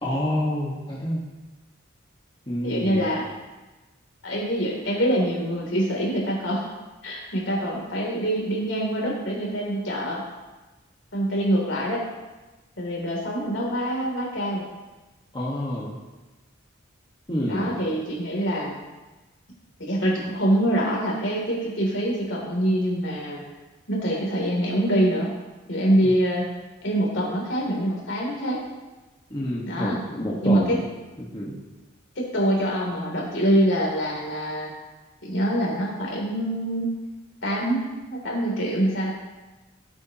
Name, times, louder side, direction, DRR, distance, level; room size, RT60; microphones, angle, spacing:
voice 1, 0.0-1.2 2.5-3.1 15.3-16.0 17.3-17.8 26.0-26.1 29.3-30.8 31.2-31.6, left 1 dB, 25° left, -6 dB, 1.6 m, -28 dB
voice 2, 2.6-3.2 4.2-6.6 7.0-10.2 11.1-12.0 12.8-14.6 17.4-18.8 19.8-23.4 23.9-25.3 25.7-26.5 26.8-28.7 29.6-30.0 30.4-30.8 32.1-34.7 35.2-36.9 37.4-39.1, right 1 dB, 70° left, -2 dB, 3.2 m, -25 dB
18.0 x 8.3 x 3.0 m, 1.2 s
head